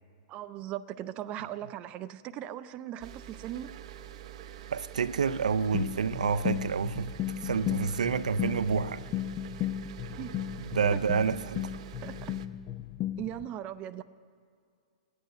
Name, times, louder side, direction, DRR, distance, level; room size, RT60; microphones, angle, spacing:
voice 1, 0.3-3.7 10.1-10.4 10.9-11.0 12.0-12.1 13.2-14.0, right 12 dB, 35° right, 0.6 m, -38 dB
sound 1, 3.0-12.5, right 11 dB, 60° right, 0.8 m, -46 dB
voice 2, 4.7-7.1 7.4-9.0 10.7-11.6, right 6 dB, 85° right, 0.5 m, -28 dB
sound 2, 5.7-13.5, left 12 dB, 35° left, 0.6 m, -35 dB
18.0 x 9.6 x 8.1 m
hypercardioid pair, 125°, 4 cm